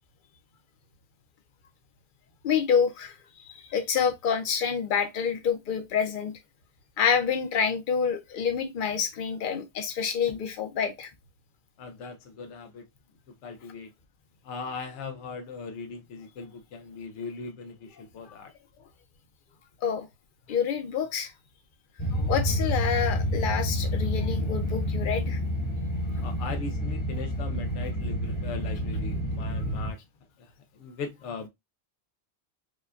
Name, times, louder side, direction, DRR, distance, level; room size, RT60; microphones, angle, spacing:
voice 1, 2.4-6.3 7.0-11.1 18.2-18.3 19.8-20.1 20.5-21.3 22.1-25.4, left 7 dB, 55° left, 0.8 m, -27 dB
voice 2, 11.8-12.8 13.4-13.9 14.4-18.5 26.2-30.0 30.4-30.5 30.7-31.5, left 4 dB, 85° left, 0.9 m, -39 dB
sound 1, 22.0-29.9, equal, 25° left, 0.9 m, -29 dB
5.0 x 2.2 x 2.4 m
omnidirectional pair, 1.2 m